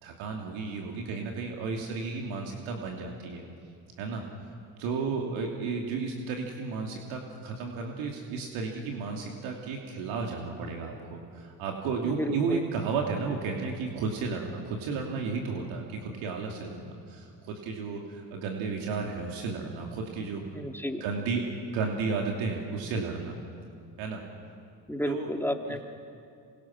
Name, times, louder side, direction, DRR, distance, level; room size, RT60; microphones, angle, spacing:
voice 1, 0.0-3.4 4.0-4.2 4.8-20.5 21.0-23.4 24.0-24.2 25.1-25.3 25.7-25.8, right 4 dB, 70° right, 1 dB, 2.9 m, -33 dB
voice 2, 12.0-12.6 20.5-21.0 24.9-25.8, left 1 dB, 5° left, 4 dB, 2.4 m, -32 dB
27.0 x 24.5 x 6.0 m, 2.5 s
hypercardioid pair, 70°, 49 cm